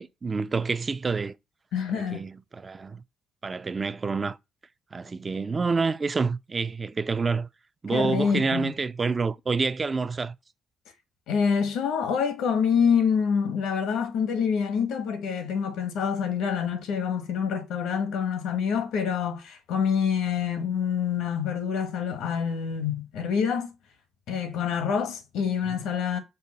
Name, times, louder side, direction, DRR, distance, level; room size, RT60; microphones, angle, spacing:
voice 1, 0.0-1.3 1.9-3.0 3.4-4.4 4.9-7.5 7.8-10.3, right 4 dB, 30° right, 0.4 m, -28 dB
voice 2, 1.7-2.3 7.9-8.7 11.3-23.7 24.3-26.2, left 7 dB, 85° left, 1.1 m, -26 dB
5.4 x 2.4 x 3.9 m
cardioid pair, 90°, 0 cm